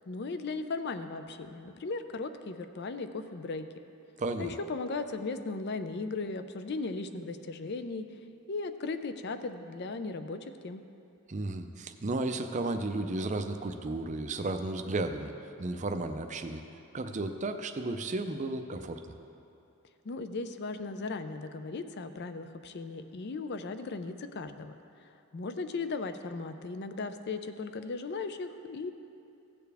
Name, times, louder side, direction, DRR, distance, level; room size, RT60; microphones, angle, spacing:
voice 1, 0.1-3.7 4.4-8.1 8.5-10.8 20.0-24.7 25.0-28.9, left 3 dB, 50° left, 10 dB, 0.4 m, -37 dB
voice 2, 4.2-4.5 11.3-15.3 15.6-16.6 16.9-19.0, right 2 dB, 30° right, 7 dB, 0.5 m, -33 dB
16.0 x 6.8 x 3.4 m, 2.7 s
head